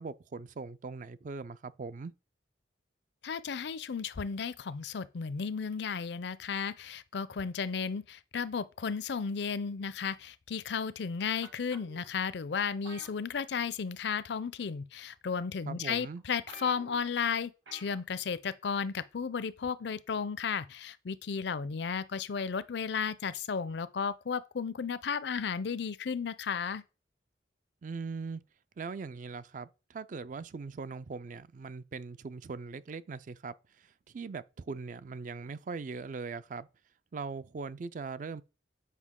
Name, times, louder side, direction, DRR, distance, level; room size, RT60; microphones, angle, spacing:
voice 1, 0.0-2.1 15.7-16.2 27.8-28.4 28.8-36.7 37.1-38.4, right 4 dB, 45° right, 0.3 m, -40 dB
voice 2, 3.2-26.8, left 6 dB, 65° left, 0.5 m, -34 dB
sound 1, 11.4-12.1 12.8-13.8 14.1-14.4 15.2-15.3 15.9-16.0 16.2-16.3 16.5-17.1 17.7-18.0 18.3-18.4, right 3 dB, 85° right, 2.0 m, -51 dB
8.3 x 5.1 x 3.7 m
head